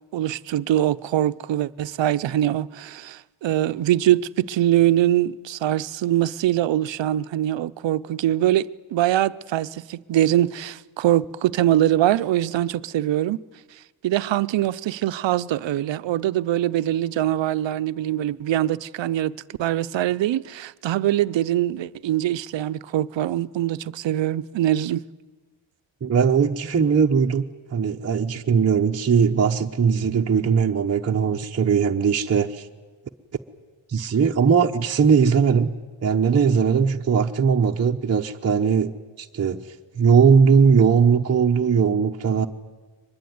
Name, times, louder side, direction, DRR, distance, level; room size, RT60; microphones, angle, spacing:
voice 1, 0.1-13.4 14.0-25.0, right 13 dB, 65° right, 0.7 m, -23 dB
voice 2, 26.0-27.4 27.7-32.7 33.9-35.7 36.0-42.5, right 6 dB, 30° right, 0.8 m, -19 dB
23.0 x 21.0 x 9.4 m
wide cardioid pair, 135°, 48 cm